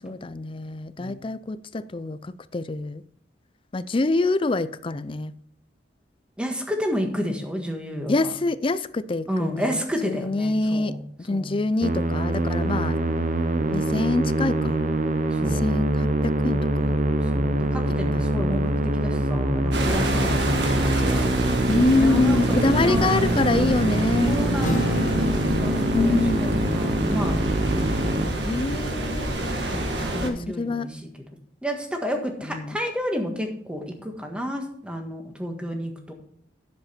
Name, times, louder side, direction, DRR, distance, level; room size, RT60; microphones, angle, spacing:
voice 1, 0.0-3.0 3.7-5.3 8.1-13.0 13.7-14.8 15.5-17.0 17.9-18.3 21.7-24.4 25.9-26.5 28.4-29.4 30.2-30.9 32.4-32.8, left 2 dB, 30° left, 0.4 m, -25 dB
voice 2, 6.4-8.3 9.3-11.0 11.3-11.5 15.3-15.6 17.3-21.2 22.0-23.5 24.3-27.3 27.7-28.4 29.7-30.9 31.6-36.1, equal, 5° right, 1.6 m, -30 dB
Musical instrument, 11.8-28.9, right 1 dB, 45° right, 0.9 m, -24 dB
sound 1, 19.7-30.3, equal, 75° right, 1.6 m, -27 dB
Acoustic guitar, 24.6-28.3, left 2 dB, 45° left, 1.2 m, -34 dB
10.5 x 7.4 x 4.3 m
head